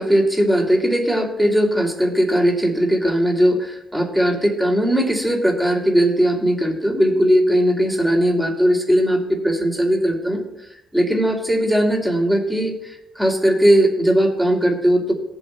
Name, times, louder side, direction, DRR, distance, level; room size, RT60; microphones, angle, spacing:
voice 1, 0.0-10.4 10.9-12.7 13.2-15.1, equal, 5° right, 0 dB, 2.4 m, -18 dB
18.5 x 8.0 x 2.2 m, 0.89 s
cardioid pair, 75°, 0 cm